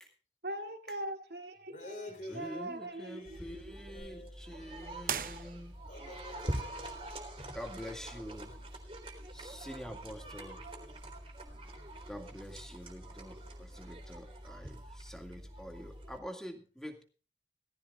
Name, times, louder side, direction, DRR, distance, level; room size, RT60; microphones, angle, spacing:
voice 1, 0.4-3.4 3.6-3.7, right 1 dB, 70° right, 2.6 m, -41 dB
voice 2, 1.7-5.1 5.9-7.1, left 2 dB, 45° left, 3.9 m, -49 dB
voice 3, 2.3-5.7 7.5-8.5 9.3-10.6 12.1-17.0, equal, 5° left, 2.1 m, -46 dB
sound 1, 3.3-16.2, right 1 dB, 30° right, 3.9 m, -45 dB
sound 2, 5.0-6.1, right 8 dB, 50° right, 0.9 m, -38 dB
18.5 x 15.5 x 2.4 m
head